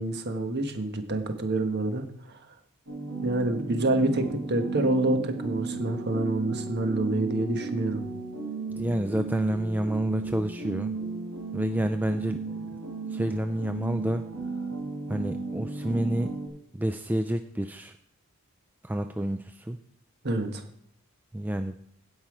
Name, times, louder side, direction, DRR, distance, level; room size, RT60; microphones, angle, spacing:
voice 1, 0.0-2.4 3.2-8.0 20.2-20.6, right 2 dB, 50° right, 6 dB, 1.4 m, -27 dB
sound 1, 2.9-16.5, right 3 dB, 80° right, 3.8 m, -35 dB
voice 2, 8.8-10.9 11.5-12.4 13.1-14.2 15.1-16.3 16.7-17.9 18.8-19.8 21.3-21.7, right 1 dB, 10° right, 8 dB, 0.3 m, -29 dB
16.5 x 5.6 x 4.9 m, 0.67 s
head